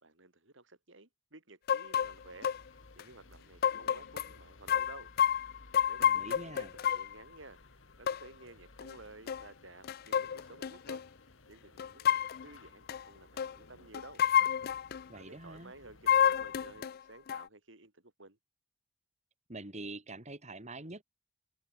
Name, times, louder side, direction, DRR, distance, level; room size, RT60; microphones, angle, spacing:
voice 1, 0.0-2.5 2.9-5.1 5.7-7.6 8.0-11.0 11.5-14.2 15.1-18.4, right 2 dB, 70° right, 4.1 m, -54 dB
sound 1, 1.7-2.1 2.4-2.6 3.0-3.1 3.6-4.3 4.7-7.1 8.1-8.2 8.8-8.9 9.3-9.5 9.8-11.0 11.8-12.5 12.9-13.0 13.4-13.6 13.9-15.0 16.1-17.0 17.3-17.4, left 8 dB, 50° left, 0.3 m, -29 dB
sound 2, 2.0-16.8, left 2 dB, 80° left, 2.9 m, -59 dB
voice 2, 6.0-6.7 15.1-15.7 19.5-21.0, right 2 dB, 35° right, 2.9 m, -45 dB
head